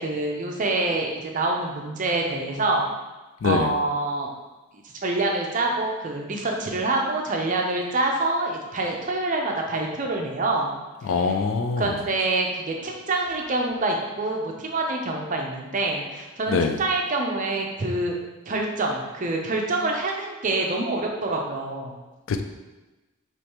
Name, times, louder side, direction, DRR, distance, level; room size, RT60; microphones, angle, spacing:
voice 1, 0.0-2.9 3.4-4.3 4.9-10.8 11.8-18.1 18.5-21.9, right 2 dB, 35° right, 1 dB, 0.5 m, -26 dB
voice 2, 3.4-3.7 11.0-12.0 16.5-16.8 22.3-22.4, left 4 dB, 60° left, 6 dB, 0.3 m, -23 dB
5.0 x 3.1 x 2.9 m, 1.1 s
head